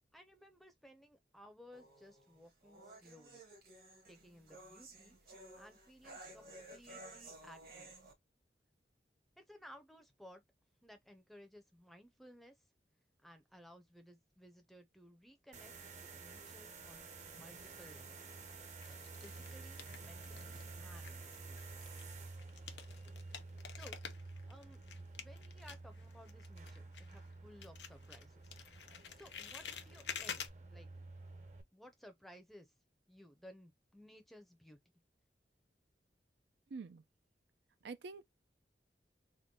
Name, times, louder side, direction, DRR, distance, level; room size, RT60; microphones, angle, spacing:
voice 1, 0.1-3.4 4.1-8.1 9.4-10.4 10.8-12.6 13.2-15.7 16.0-18.2 18.9-21.7 23.7-24.8 25.2-28.6 29.1-30.9 31.7-32.7 33.1-34.8, equal, ahead, 0.5 m, -59 dB
sound 1, 1.7-8.1, right 2 dB, 55° right, 1.3 m, -55 dB
sound 2, 15.5-31.6, right 3 dB, 40° right, 0.7 m, -51 dB
sound 3, 17.6-18.2 18.8-20.7 21.0-27.3 27.6-30.5, left 7 dB, 85° left, 0.7 m, -49 dB
voice 2, 36.7-37.0 37.8-38.2, right 4 dB, 80° right, 0.4 m, -46 dB
3.7 x 2.2 x 3.6 m
head